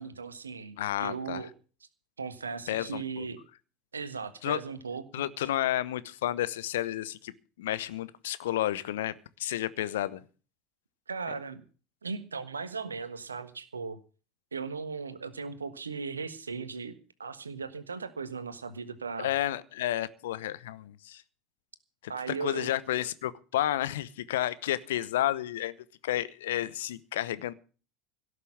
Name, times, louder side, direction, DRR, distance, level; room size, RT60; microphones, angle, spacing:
voice 1, 0.0-1.5 2.2-3.4 3.9-5.2 11.1-11.6 12.0-14.0 14.5-19.3 22.1-22.7, right 5 dB, 80° right, 1.4 m, -37 dB
voice 2, 0.8-1.4 2.7-3.3 4.4-4.6 5.1-7.3 7.6-10.2 19.2-21.2 22.3-25.7 26.0-27.5, left 13 dB, 65° left, 0.9 m, -31 dB
17.0 x 6.7 x 8.7 m
figure-of-eight pair, 75°, 0 cm